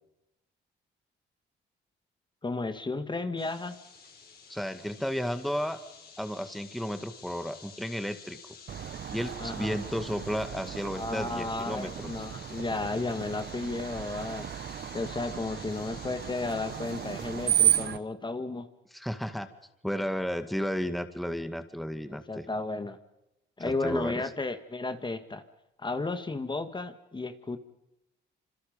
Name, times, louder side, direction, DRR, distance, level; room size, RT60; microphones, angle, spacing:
voice 1, 2.4-3.8 9.4-9.8 10.9-14.5 14.9-18.7 22.1-23.0 23.6-25.4 25.8-27.6, left 3 dB, 25° left, 9 dB, 2.0 m, -33 dB
sound 1, 3.4-17.9, left 5 dB, 50° left, 6.9 m, -50 dB
voice 2, 4.5-5.8 6.2-8.4 9.1-12.3 18.9-19.5 19.8-22.5 23.6-24.2, equal, ahead, 9 dB, 2.0 m, -33 dB
Screech, 8.7-18.0, right 10 dB, 55° right, 1.0 m, -33 dB
27.0 x 27.0 x 5.4 m, 0.88 s
cardioid pair, 90°, 20 cm